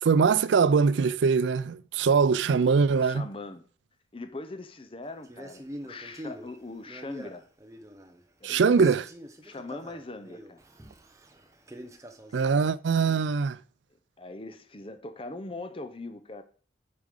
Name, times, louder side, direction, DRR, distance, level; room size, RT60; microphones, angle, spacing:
voice 1, 0.0-3.2 8.4-9.1 12.3-13.6, right 5 dB, 80° right, 0.4 m, -22 dB
voice 2, 3.0-3.6 4.1-7.5 8.4-8.9 9.4-10.6 12.3-12.7 13.0-13.2 14.2-16.4, left 2 dB, 30° left, 0.7 m, -41 dB
Male speech man speaking, 5.2-8.2 8.5-12.6, equal, 15° right, 0.8 m, -45 dB
8.3 x 5.1 x 5.3 m
head